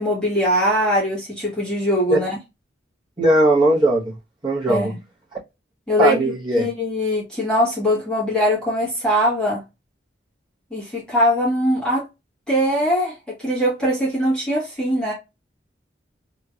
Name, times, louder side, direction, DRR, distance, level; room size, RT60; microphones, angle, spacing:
voice 1, 0.0-2.4 4.7-5.0 5.9-9.6 10.7-12.0 12.5-15.1, equal, 5° left, 1.6 m, -21 dB
voice 2, 3.2-4.1 4.4-4.9 6.0-6.7, right 1 dB, 25° right, 1.2 m, -18 dB
3.6 x 3.0 x 2.4 m
head